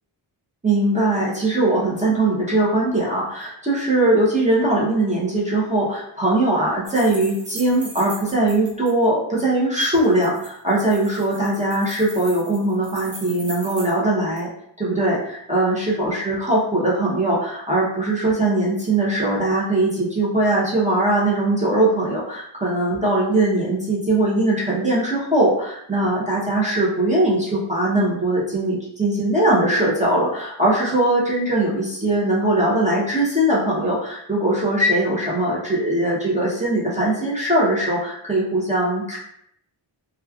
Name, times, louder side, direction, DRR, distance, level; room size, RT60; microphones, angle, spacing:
voice 1, 0.6-14.5 14.8-39.2, right 1 dB, 15° right, -6 dB, 0.7 m, -20 dB
sound 1, 6.8-8.9 9.8-14.0 14.4-14.5, right 3 dB, 75° right, 0.8 m, -39 dB
3.0 x 2.3 x 2.3 m, 0.72 s
wide cardioid pair, 95°, 45 cm